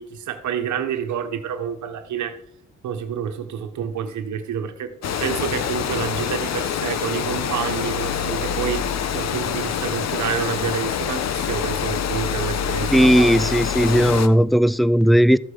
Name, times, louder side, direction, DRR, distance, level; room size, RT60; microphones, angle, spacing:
voice 1, 0.0-2.4 2.8-4.9 5.2-8.9 9.1-13.4, right 8 dB, 70° right, 1.3 m, -28 dB
Water, 5.0-14.3, left 8 dB, 60° left, 1.0 m, -26 dB
voice 2, 12.9-15.4, equal, ahead, 0.4 m, -16 dB
13.5 x 7.7 x 5.0 m
cardioid pair, 90°, 30 cm